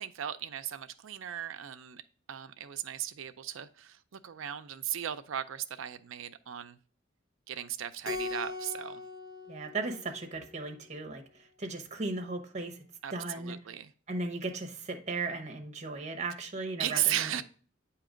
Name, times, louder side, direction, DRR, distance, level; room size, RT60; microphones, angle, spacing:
voice 1, 0.0-2.0 2.3-6.8 7.5-9.0 13.0-13.9 16.8-17.4, right 11 dB, 75° right, 11 dB, 0.4 m, -36 dB
Keyboard (musical), 8.0-10.7, left 4 dB, 50° left, 0.9 m, -40 dB
voice 2, 9.5-12.8 13.1-13.6 14.1-17.3, right 3 dB, 35° right, 6 dB, 0.8 m, -37 dB
8.4 x 2.9 x 5.0 m, 0.43 s
head